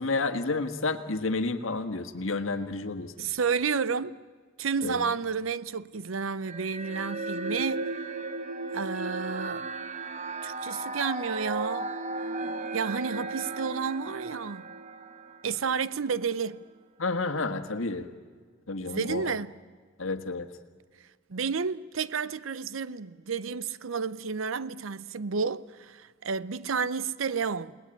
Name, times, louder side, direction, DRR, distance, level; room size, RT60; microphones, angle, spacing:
voice 1, 0.0-3.3 4.8-5.0 17.0-18.1 18.7-19.3 20.0-20.5, left 3 dB, 85° left, 1.6 m, -30 dB
voice 2, 3.2-4.2 4.6-7.9 8.7-9.7 10.4-11.9 12.7-14.7 15.4-16.7 18.8-19.5 21.3-27.8, right 5 dB, 85° right, 0.7 m, -31 dB
sound 1, 6.5-16.0, right 3 dB, 35° right, 1.1 m, -35 dB
29.0 x 19.0 x 9.1 m
head